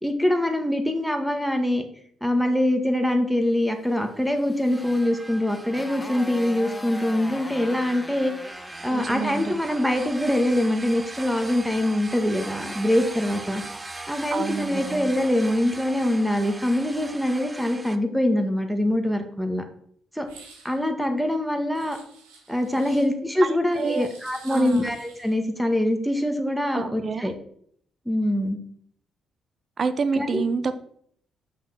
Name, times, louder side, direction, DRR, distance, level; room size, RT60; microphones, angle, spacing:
voice 1, 0.0-1.8 2.2-8.3 8.8-13.6 14.1-19.7 20.2-20.3 20.6-22.0 22.5-27.3 28.1-28.6 30.2-30.4, left 1 dB, ahead, 6 dB, 1.8 m, -24 dB
Motorcycle, 3.9-9.9, left 2 dB, 20° left, 1.0 m, -41 dB
sound 1, 4.7-18.0, right 2 dB, 20° right, 0.9 m, -40 dB
voice 2, 8.9-9.5 14.3-15.1 23.4-24.1 24.5-24.9 26.7-27.3 29.8-30.7, right 5 dB, 50° right, 12 dB, 0.8 m, -28 dB
sound 2, 20.2-20.8 21.7-23.1 23.7-25.4, right 5 dB, 85° right, 1.7 m, -49 dB
6.5 x 5.6 x 6.0 m, 0.64 s
hypercardioid pair, 45°, 0 cm